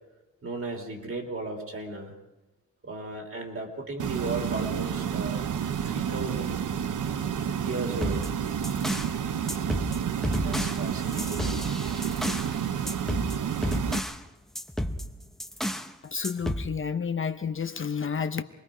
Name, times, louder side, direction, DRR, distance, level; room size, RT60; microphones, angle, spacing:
voice 1, 0.4-2.2 2.8-5.5 5.8-6.6 7.6-8.3 10.4-11.7, right 2 dB, 45° right, 3.2 m, -35 dB
sound 1, 4.0-14.0, right 8 dB, 85° right, 0.9 m, -30 dB
sound 2, 7.9-9.1 9.5-12.5 12.9-14.2 14.5-15.9 16.2-16.7, equal, ahead, 0.8 m, -32 dB
voice 2, 16.0-18.4, left 6 dB, 40° left, 0.8 m, -30 dB
28.0 x 21.5 x 5.0 m
wide cardioid pair, 130°, 30 cm